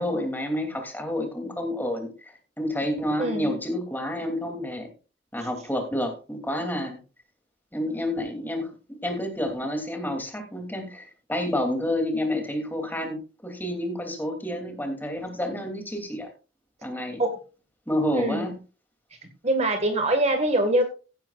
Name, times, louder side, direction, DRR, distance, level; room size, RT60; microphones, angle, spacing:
voice 1, 0.0-4.9 5.3-7.0 7.7-16.3 16.8-17.2 17.9-18.5, left 1 dB, 10° left, 4 dB, 2.8 m, -29 dB
voice 2, 3.2-3.6 17.2-17.3 18.1-18.5 19.4-20.8, right 1 dB, 35° right, 6 dB, 1.8 m, -23 dB
16.0 x 10.5 x 2.5 m, 0.33 s
head